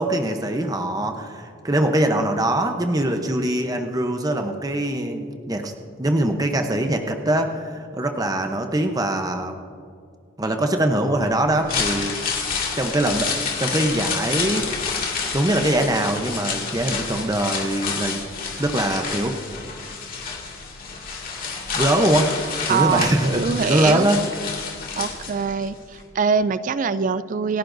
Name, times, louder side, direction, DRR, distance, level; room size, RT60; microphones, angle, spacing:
voice 1, 0.0-5.7 6.0-9.6 10.4-12.1 12.8-13.3 13.6-14.7 15.3-18.2 18.6-19.4 21.7-22.4 22.7-24.2 24.5-24.6, right 1 dB, 20° right, 5 dB, 0.8 m, -22 dB
sound 1, 11.5-25.7 26.0-26.1, left 5 dB, 45° left, 2.2 m, -29 dB
voice 2, 22.7-24.1 25.0-27.6, right 5 dB, 40° right, 15 dB, 0.3 m, -23 dB
27.5 x 11.0 x 2.6 m, 2.2 s
head